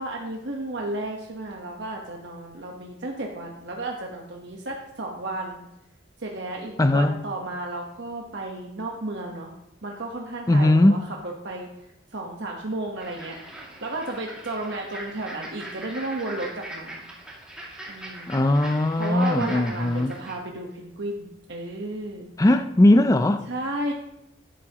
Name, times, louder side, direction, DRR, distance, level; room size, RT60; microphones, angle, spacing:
voice 1, 0.0-5.7 6.2-9.5 9.8-11.7 12.1-13.4 13.8-17.1 17.9-18.4 19.0-22.3 23.5-23.9, right 2 dB, 60° right, 1.2 m, -33 dB
voice 2, 6.8-7.2 10.5-11.0 18.3-20.1 22.4-23.5, left 1 dB, 15° left, 0.4 m, -19 dB
sound 1, 13.0-20.4, right 1 dB, 5° right, 2.3 m, -41 dB
12.5 x 11.0 x 3.0 m
head